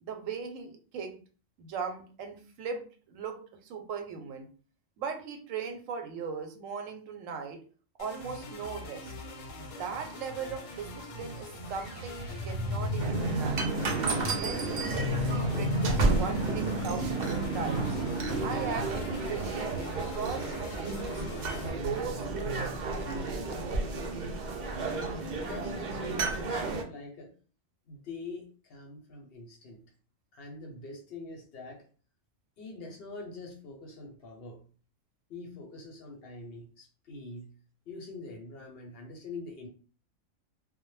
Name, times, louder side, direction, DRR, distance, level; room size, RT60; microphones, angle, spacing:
voice 1, 0.0-1.2 1.6-4.5 5.0-7.6 8.0-9.1 9.6-13.8 14.3-17.9 18.4-23.3, right 6 dB, 90° right, 5 dB, 1.0 m, -39 dB
sound 1, 8.0-21.7, equal, 85° left, 1.0 m, -43 dB
sound 2, 11.7-19.8, right 1 dB, 30° right, 0.8 m, -32 dB
sound 3, 13.0-26.8, right 3 dB, 60° right, 0.4 m, -33 dB
voice 2, 25.5-27.3 27.9-29.8 30.3-31.9 32.6-34.6 35.3-37.5 37.9-39.7, left 3 dB, 60° left, 1 dB, 0.8 m, -44 dB
2.2 x 2.0 x 3.0 m, 0.39 s
omnidirectional pair, 1.3 m